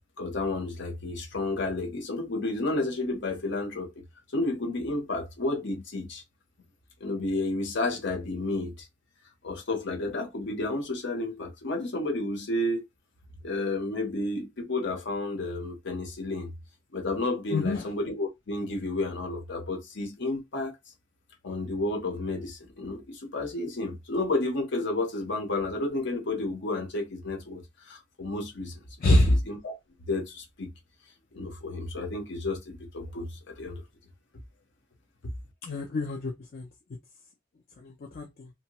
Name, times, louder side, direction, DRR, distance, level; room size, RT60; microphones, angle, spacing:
voice 1, 0.2-3.9 4.3-6.2 7.0-8.7 9.4-12.8 13.4-16.5 16.9-20.8 21.4-28.8 29.0-29.8 30.1-30.7 31.3-33.8, left 2 dB, 65° left, 0.9 m, -31 dB
voice 2, 17.5-17.9 29.0-29.4 35.6-36.7 37.8-38.5, left 1 dB, 50° left, 0.5 m, -25 dB
2.7 x 2.1 x 2.9 m
head